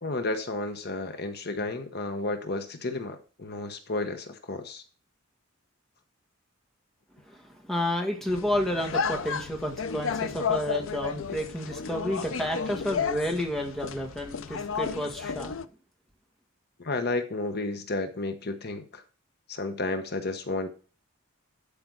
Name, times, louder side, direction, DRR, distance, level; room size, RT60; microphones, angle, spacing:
voice 1, 0.0-4.8 16.8-19.0 19.5-20.7, left 2 dB, 50° left, 8 dB, 1.1 m, -32 dB
voice 2, 7.3-15.5, left 1 dB, ahead, 0 dB, 1.7 m, -31 dB
sound 1, 8.3-15.6, left 6 dB, 75° left, 0.6 m, -32 dB
12.0 x 5.1 x 6.2 m, 0.37 s
head